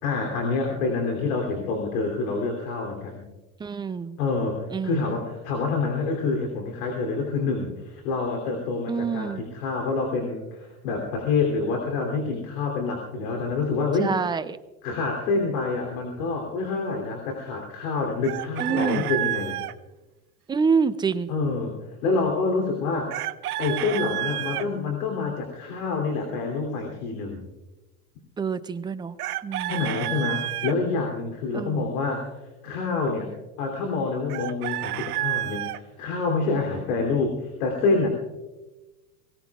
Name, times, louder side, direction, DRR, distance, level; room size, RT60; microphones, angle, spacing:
voice 1, 0.0-3.2 4.2-14.1 14.8-19.6 21.3-23.1 23.6-27.4 29.6-32.3 32.6-33.3 33.6-38.1, left 4 dB, 75° left, 1 dB, 3.1 m, -27 dB
voice 2, 3.6-4.2 4.7-5.1 8.9-9.4 14.0-14.6 18.6-19.1 20.5-21.3 28.4-29.1 29.4-29.7 31.5-31.9, right 5 dB, 10° right, 13 dB, 0.3 m, -26 dB
Chicken rooster, 18.2-19.7 23.1-24.7 29.2-30.7 34.3-35.8, right 14 dB, 90° right, 0.7 m, -30 dB
24.0 x 17.0 x 2.4 m, 1.1 s
hypercardioid pair, 110°, 44 cm